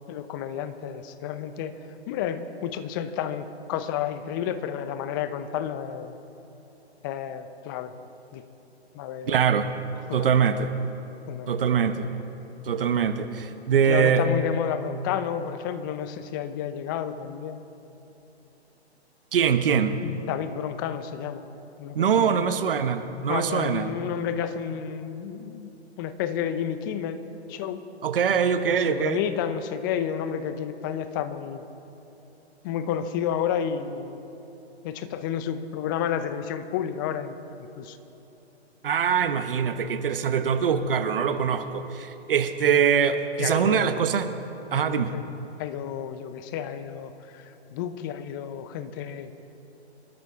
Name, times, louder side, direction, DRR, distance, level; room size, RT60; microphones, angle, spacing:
voice 1, 0.1-1.7 2.1-6.2 7.0-7.9 8.3-8.4 8.9-9.4 10.1-10.7 11.3-11.8 13.8-17.6 20.0-21.5 21.8-22.5 23.3-27.2 27.5-27.8 28.7-31.6 32.6-34.2 34.8-37.4 37.8-38.0 43.4-44.1 44.7-45.3 45.6-49.3, left 9 dB, 20° left, 11 dB, 0.6 m, -31 dB
voice 2, 9.2-9.7 10.1-10.7 11.5-12.1 12.6-14.4 19.3-20.0 21.9-23.9 28.0-29.2 38.8-44.3 44.7-45.1, right 7 dB, 55° right, 9 dB, 1.0 m, -23 dB
25.5 x 12.0 x 3.6 m, 2.9 s
figure-of-eight pair, 130°, 33 cm